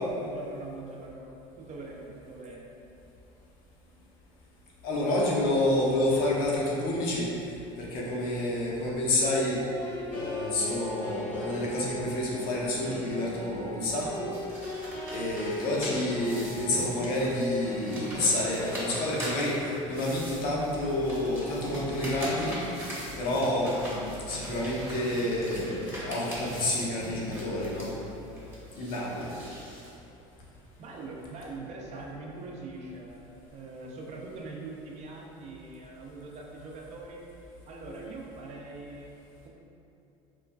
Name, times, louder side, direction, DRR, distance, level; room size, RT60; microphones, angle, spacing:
voice 1, 0.2-2.7 30.8-37.2 37.7-39.1, right 3 dB, 45° right, -1 dB, 0.4 m, -42 dB
voice 2, 4.8-7.3 7.8-9.6 10.1-14.3 15.1-22.6 23.2-24.0 24.3-27.9 28.8-29.3, left 1 dB, 65° left, -4 dB, 0.6 m, -29 dB
sound 1, 9.2-18.8, equal, 90° left, 1.0 m, -40 dB
sound 2, 14.3-29.9, equal, 10° right, 0.8 m, -41 dB
3.0 x 2.3 x 2.2 m, 2.8 s
supercardioid pair, 90°, 17 cm